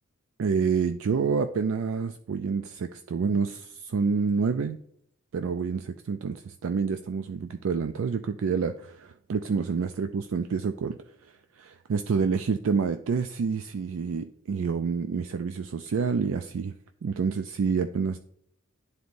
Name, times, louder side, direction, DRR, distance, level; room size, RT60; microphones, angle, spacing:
voice 1, 0.4-4.8 5.3-11.0 11.6-16.7 17.0-18.2, right 5 dB, 70° right, 8 dB, 0.4 m, -28 dB
11.0 x 4.1 x 2.6 m, 0.70 s
head